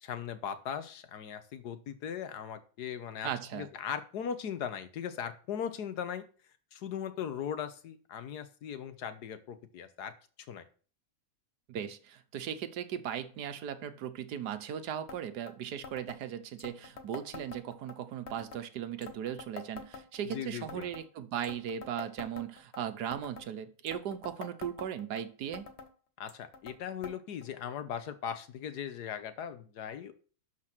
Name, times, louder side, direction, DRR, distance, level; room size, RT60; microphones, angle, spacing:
voice 1, 0.0-6.2 6.7-10.1 10.5-10.6 20.3-20.9 26.2-30.1, left 8 dB, 85° left, 11 dB, 1.5 m, -39 dB
voice 2, 3.2-3.7 11.7-25.7, right 9 dB, 80° right, 11 dB, 1.5 m, -38 dB
sound 1, 15.1-15.2 15.5-15.6 15.8-16.2 16.6-18.0 18.3-18.6 19.0-20.4 20.7-21.1 21.4-22.8 23.1-23.5 23.9-25.2 25.5-25.9 26.3-26.8 27.0-27.2 27.4-27.5 28.3-28.4 29.2-29.3, left 4 dB, 45° left, 1.2 m, -46 dB
12.0 x 4.7 x 6.0 m, 0.40 s
omnidirectional pair, 1.7 m